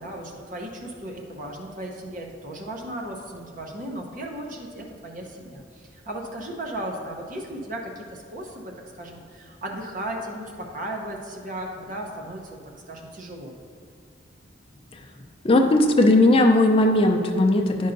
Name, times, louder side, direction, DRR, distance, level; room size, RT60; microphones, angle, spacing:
voice 1, 0.0-12.6 12.9-13.5, right 1 dB, 45° right, 1 dB, 0.8 m, -36 dB
voice 2, 15.4-17.9, left 2 dB, 30° left, 3 dB, 0.5 m, -18 dB
9.9 x 5.5 x 2.6 m, 2.2 s
head